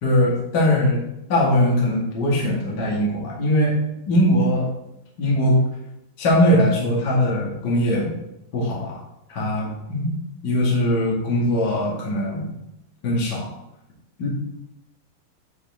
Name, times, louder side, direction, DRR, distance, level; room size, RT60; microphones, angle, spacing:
voice 1, 0.0-1.0 1.3-3.8 4.1-4.7 5.2-5.6 6.2-8.1 8.5-8.9 9.3-10.1 10.4-12.5 13.0-13.4 14.2-14.3, left 1 dB, 40° left, -4 dB, 1.6 m, -20 dB
9.3 x 4.1 x 3.5 m, 0.85 s
omnidirectional pair, 4.6 m